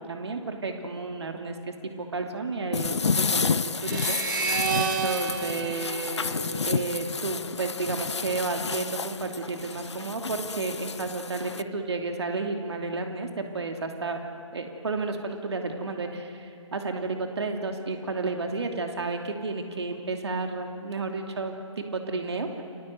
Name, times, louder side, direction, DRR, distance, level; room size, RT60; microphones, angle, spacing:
voice 1, 0.0-14.2 14.5-22.5, right 3 dB, 55° right, 4 dB, 2.9 m, -32 dB
sound 1, 2.7-11.6, left 5 dB, 60° left, 0.9 m, -30 dB
sound 2, 3.8-7.1, right 6 dB, 40° right, 2.1 m, -31 dB
29.5 x 25.5 x 8.0 m, 2.7 s
figure-of-eight pair, 145°, 17 cm